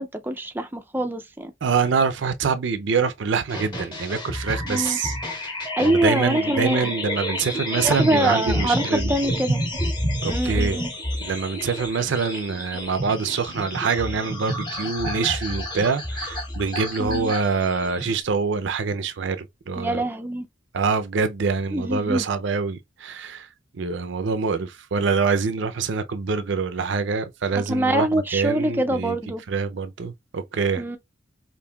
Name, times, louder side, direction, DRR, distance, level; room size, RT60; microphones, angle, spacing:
voice 1, 0.0-1.5 4.7-5.0 5.8-6.9 7.8-9.6 10.3-10.9 17.0-17.3 19.8-20.5 21.7-22.2 27.6-29.4 30.8-31.0, right 1 dB, 10° right, 0.4 m, -24 dB
voice 2, 1.6-5.5 5.8-9.1 10.2-10.8 11.2-20.0 20.7-23.5 23.7-29.2 29.5-30.8, right 5 dB, 70° right, 0.5 m, -25 dB
sound 1, 3.5-18.2, equal, 25° left, 1.0 m, -29 dB
5.2 x 2.6 x 2.3 m
head